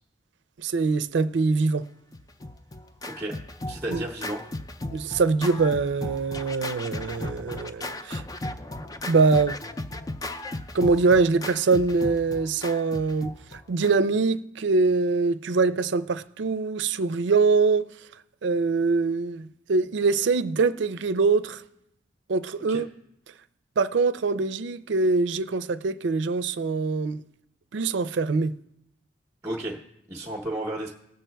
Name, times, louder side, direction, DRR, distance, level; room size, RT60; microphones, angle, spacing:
voice 1, 0.6-1.9 3.9-4.0 4.9-8.2 9.1-9.6 10.7-17.9 18.4-21.6 22.3-22.9 23.8-27.2 27.7-28.5, right 4 dB, 80° right, 0.4 m, -23 dB
Scratching (performance technique), 2.1-14.2, left 2 dB, 20° left, 0.3 m, -36 dB
voice 2, 3.0-4.5 22.7-22.8 29.4-29.8 30.1-30.9, right 1 dB, 15° right, 0.8 m, -33 dB
20.0 x 7.5 x 2.3 m
head